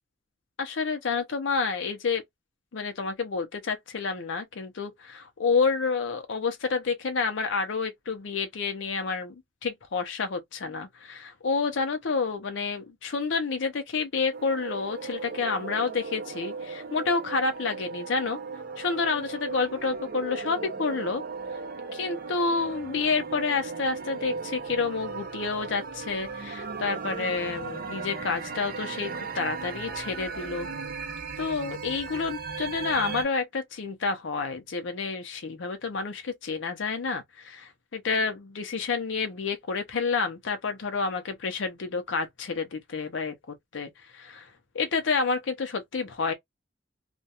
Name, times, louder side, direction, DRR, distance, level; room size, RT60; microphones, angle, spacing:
voice 1, 0.6-2.2 2.7-9.3 9.6-18.4 18.8-21.2 21.9-30.7 31.4-43.3 43.7-44.5 44.7-46.3, left 4 dB, 80° left, 0.6 m, -29 dB
sound 1, 14.3-33.3, right 4 dB, 50° right, 0.6 m, -37 dB
2.4 x 2.1 x 2.7 m
head